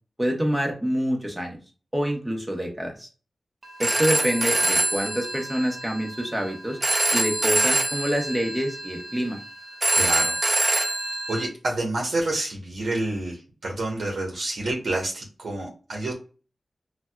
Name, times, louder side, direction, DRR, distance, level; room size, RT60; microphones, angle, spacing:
voice 1, 0.2-1.6 1.9-3.1 3.8-6.8 7.1-9.4, equal, 5° right, 1 dB, 0.9 m, -26 dB
Telephone, 3.6-11.5, right 2 dB, 30° right, 0.5 m, -25 dB
voice 2, 9.9-10.4 11.3-16.1, right 2 dB, 80° right, -1 dB, 0.8 m, -28 dB
4.2 x 2.2 x 2.2 m, 0.35 s
wide cardioid pair, 115°, 0 cm